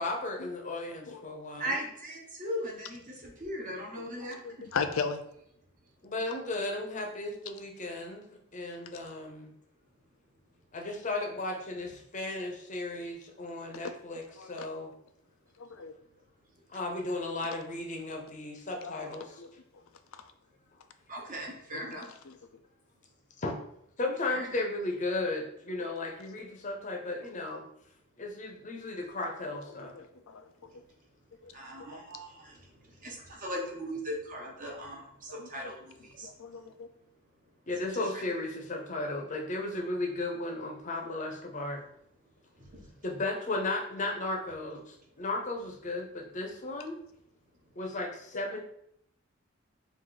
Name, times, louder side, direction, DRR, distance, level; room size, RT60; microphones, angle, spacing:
voice 1, 0.0-1.8 6.0-8.3 8.5-9.5 10.7-14.9 16.7-19.4 23.4-23.5 24.0-27.6 28.2-29.9 37.7-41.8 43.0-47.0 47.8-48.6, left 2 dB, 35° left, 2 dB, 0.8 m, -35 dB
voice 2, 1.6-4.7 21.1-22.0 24.3-24.5 31.5-36.3 37.9-38.2 42.6-42.9, equal, 40° right, -1 dB, 1.1 m, -39 dB
voice 3, 4.2-5.2 13.8-13.9 14.4-14.7 15.6-15.9 18.8-19.1 19.4-19.5 21.7-22.0 22.3-22.4 29.9-30.4 31.4-31.5 31.9-32.0 35.4-35.7 36.2-36.9, left 5 dB, 70° left, 8 dB, 0.5 m, -37 dB
4.7 x 2.6 x 3.9 m, 0.73 s
head